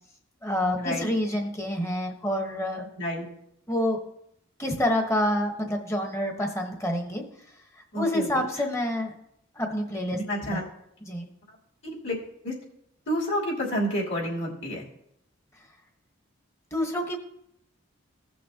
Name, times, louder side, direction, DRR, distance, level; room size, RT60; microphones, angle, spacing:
voice 1, 0.4-2.8 3.7-4.0 4.6-7.2 8.0-9.1 9.6-10.6 11.1-11.3 16.7-17.2, left 1 dB, 15° left, 2 dB, 1.2 m, -27 dB
voice 2, 7.9-8.3 10.1-10.6 11.8-12.1 12.4-12.5 13.1-14.8, equal, 60° left, -5 dB, 3.2 m, -29 dB
16.5 x 6.2 x 2.8 m, 0.76 s
head